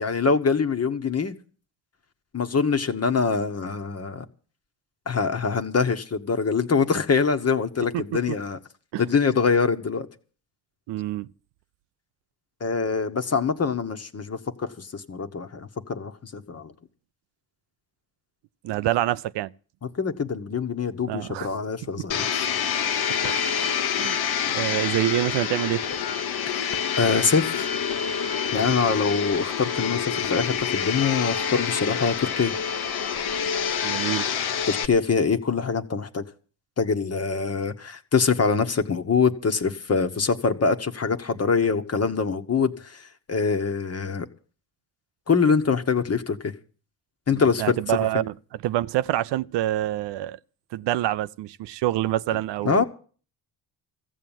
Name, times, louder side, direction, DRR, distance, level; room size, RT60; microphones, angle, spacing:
voice 1, 0.0-1.3 2.3-4.2 5.1-8.6 9.0-10.1 12.6-16.7 20.0-22.4 26.5-27.7 28.5-32.5 34.7-36.2 36.8-43.0 43.3-44.3 45.3-46.5 47.3-48.0 52.6-52.8, left 5 dB, 35° left, 1.4 m, -24 dB
voice 2, 10.9-11.3 18.6-19.5 21.1-21.5 21.8-21.9 23.2-23.4 24.0-24.2 24.5-25.8 33.8-34.3 47.3-48.3 48.6-50.4 50.7-52.8, right 14 dB, 75° right, 0.6 m, -26 dB
Domestic sounds home sounds, 22.1-34.8, left 7 dB, 60° left, 1.1 m, -27 dB
14.5 x 7.3 x 9.1 m
cardioid pair, 75°, 42 cm